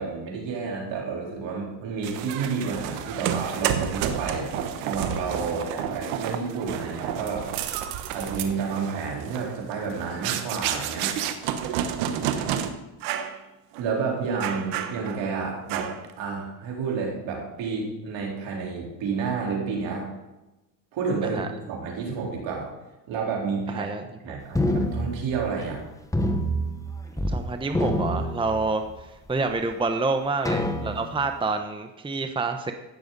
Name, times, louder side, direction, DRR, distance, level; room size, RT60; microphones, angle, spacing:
voice 1, 0.0-4.5 4.8-7.5 8.1-11.1 13.8-15.9 16.2-20.1 20.9-22.7 23.1-23.9 24.2-25.8, right 5 dB, 70° right, -2 dB, 4.1 m, -30 dB
sound 1, 2.0-12.7 13.0-13.4 13.7-13.9 14.4-15.3 15.7-16.1, right 9 dB, 85° right, 1.2 m, -30 dB
voice 2, 12.2-12.8 21.3-21.5 23.7-24.3 27.3-28.8 29.3-32.7, right 3 dB, 10° right, 6 dB, 0.9 m, -28 dB
sound 2, 24.6-25.8 26.1-27.4 27.7-29.0 29.6-29.7 30.5-31.3, equal, 5° left, 1.1 m, -27 dB
17.0 x 6.9 x 4.1 m, 1.0 s
supercardioid pair, 90°, 47 cm